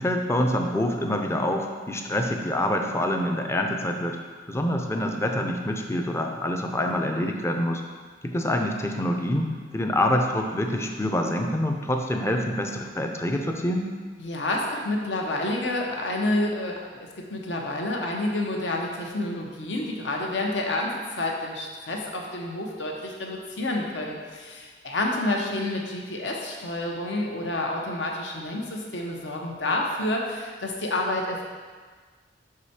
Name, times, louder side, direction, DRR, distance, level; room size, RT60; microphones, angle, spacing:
voice 1, 0.0-4.2 4.5-7.8 8.2-13.9, left 1 dB, 15° left, 3 dB, 0.5 m, -26 dB
voice 2, 14.2-31.4, left 2 dB, 70° left, 0 dB, 0.9 m, -29 dB
5.4 x 4.9 x 4.2 m, 1.5 s
head